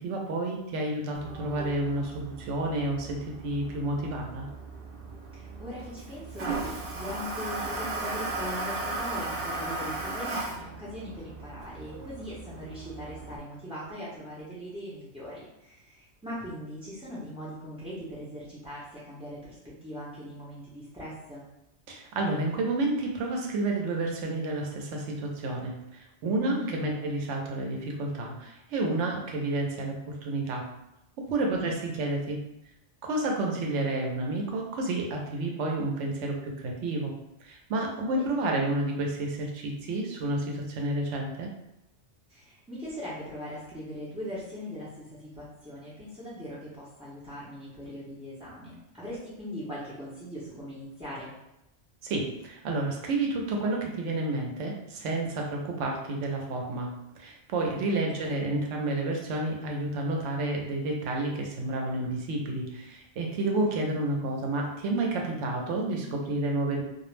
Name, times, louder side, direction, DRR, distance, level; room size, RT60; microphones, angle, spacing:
voice 1, 0.0-4.5 21.9-25.7 26.2-30.0 30.2-30.7 31.3-32.4 33.0-37.1 37.4-41.5 52.0-56.9 57.1-66.8, right 2 dB, 85° right, 1 dB, 0.9 m, -30 dB
Toilet flush, 1.1-13.4, right 2 dB, 60° right, 0.6 m, -37 dB
voice 2, 5.3-21.4 26.4-26.7 31.5-31.9 38.1-38.5 42.3-51.3 57.9-58.4 63.6-63.8, equal, 10° right, -10 dB, 0.3 m, -40 dB
2.4 x 2.0 x 3.1 m, 0.87 s
omnidirectional pair, 1.2 m